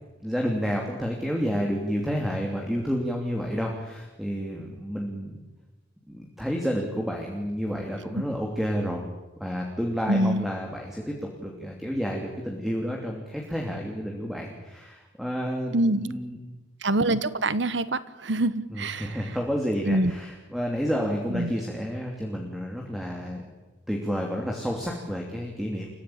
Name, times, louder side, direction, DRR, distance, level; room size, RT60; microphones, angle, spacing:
voice 1, 0.2-5.4 6.1-9.1 9.4-16.4 18.7-23.4 23.9-25.9, equal, ahead, 0 dB, 2.9 m, -30 dB
voice 2, 10.1-10.5 15.7-16.1 16.8-19.2 19.9-20.1 21.3-21.5, right 1 dB, 65° right, 15 dB, 1.2 m, -25 dB
29.0 x 16.0 x 8.7 m, 1.1 s
head